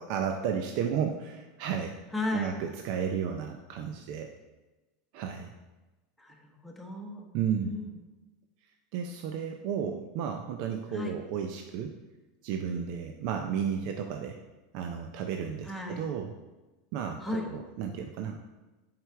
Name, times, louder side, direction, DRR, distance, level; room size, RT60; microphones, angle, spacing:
voice 1, 0.0-1.9 2.3-4.3 5.1-5.5 7.3-7.7 8.9-11.9 12.4-14.4 14.7-16.3 16.9-18.6, right 7 dB, 60° right, 4 dB, 0.5 m, -33 dB
voice 2, 2.1-2.6 6.2-7.3 7.6-7.9 10.9-11.2 15.6-16.1 17.2-17.5, left 2 dB, 5° left, -1 dB, 1.0 m, -35 dB
7.8 x 4.9 x 3.4 m, 1.1 s
supercardioid pair, 140°, 0 cm